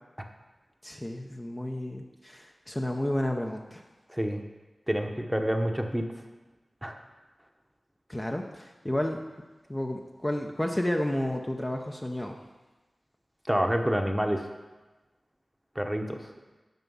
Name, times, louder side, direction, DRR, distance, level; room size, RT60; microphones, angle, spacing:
voice 1, 0.8-3.8 8.1-9.2 9.7-12.4, left 1 dB, 20° left, 2 dB, 0.7 m, -31 dB
voice 2, 4.1-4.4 4.9-6.0 6.8-7.0 13.5-14.5 15.7-16.3, equal, 5° right, 4 dB, 0.9 m, -28 dB
9.4 x 5.9 x 5.5 m, 1.2 s
wide cardioid pair, 60°, 0 cm